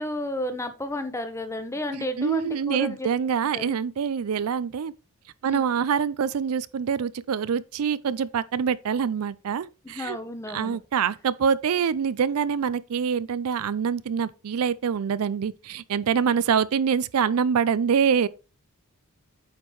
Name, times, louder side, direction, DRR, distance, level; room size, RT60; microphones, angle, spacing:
voice 1, 0.0-3.1 3.5-3.7 5.4-5.7 9.8-10.8, left 1 dB, 15° left, 0.9 m, -32 dB
voice 2, 1.9-4.9 5.4-10.2 10.5-18.3, right 7 dB, 70° right, 0.4 m, -25 dB
8.8 x 5.3 x 3.1 m
head